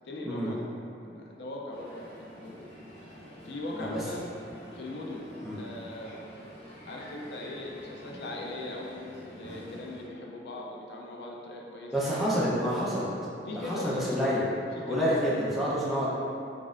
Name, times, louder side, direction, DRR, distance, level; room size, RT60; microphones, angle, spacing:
voice 1, 0.0-0.6 1.0-2.1 2.4-2.7 3.4-4.3 4.7-5.3 5.5-6.2 6.9-12.1 13.5-14.3 14.7-15.5, left 1 dB, 70° left, -1 dB, 0.4 m, -39 dB
Crowd, 1.7-10.0, equal, 35° left, 0.8 m, -48 dB
voice 2, 11.9-13.1 13.5-14.5 14.9-16.1, equal, ahead, -9 dB, 0.6 m, -28 dB
4.1 x 3.5 x 2.5 m, 2.6 s
head